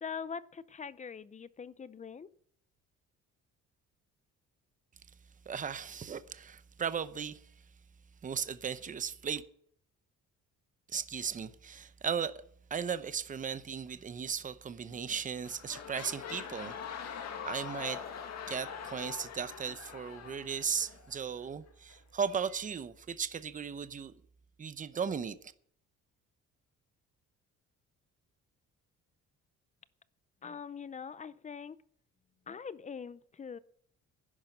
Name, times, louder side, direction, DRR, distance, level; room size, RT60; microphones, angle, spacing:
voice 1, 0.0-2.3 30.4-31.8 32.5-33.6, left 6 dB, 25° left, 0.5 m, -43 dB
voice 2, 5.5-7.4 8.2-9.4 10.9-12.4 12.7-16.8 17.1-18.0 18.5-24.1 24.6-25.4, right 7 dB, 25° right, 0.8 m, -36 dB
sound 1, 14.9-15.1 15.4-21.2 21.9-22.0, left 7 dB, 60° left, 2.1 m, -43 dB
11.0 x 10.5 x 6.6 m
cardioid pair, 135°, 30 cm